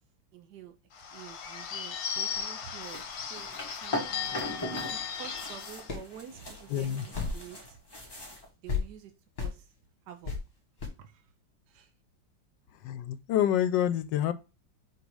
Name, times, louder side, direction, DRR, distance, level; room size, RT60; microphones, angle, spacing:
voice 1, 0.3-0.8 1.1-7.8 8.6-9.1 9.4-9.7 10.1-10.3 11.0-11.3 11.7-11.9, right 9 dB, 70° right, 1.3 m, -49 dB
Bird / Bell, 0.9-5.9, left 7 dB, 60° left, 1.4 m, -36 dB
sound 1, 2.8-4.9 5.2-8.5, left 1 dB, 15° left, 1.2 m, -39 dB
sound 2, 3.9-7.7 8.0-8.1 8.7-8.8 9.4-9.6 10.2-10.4 10.8-10.9, left 5 dB, 35° left, 1.9 m, -37 dB
voice 2, 6.7-7.0 12.8-14.3, left 10 dB, 90° left, 1.3 m, -27 dB
5.0 x 4.0 x 4.7 m
omnidirectional pair, 1.9 m